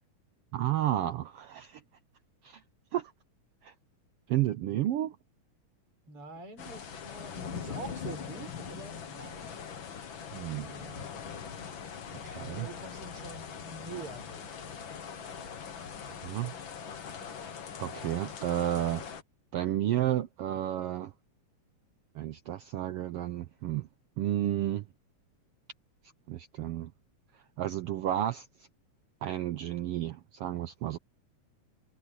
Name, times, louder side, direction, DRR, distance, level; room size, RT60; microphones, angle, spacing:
voice 1, 0.5-1.8 2.4-2.6 2.9-3.1 3.6-3.7 4.3-5.2 10.3-10.7 12.2-12.7 16.2-16.5 17.8-19.0 19.5-21.1 22.1-23.9 24.2-24.8 26.3-26.9 27.6-28.5 29.2-31.0, right 12 dB, 80° right, 1.3 m, -31 dB
voice 2, 6.1-9.5 10.5-11.2 12.5-14.9, right 4 dB, 45° right, 5.6 m, -46 dB
sound 1, 6.6-19.2, left 7 dB, 45° left, 2.0 m, -42 dB
omnidirectional pair, 3.5 m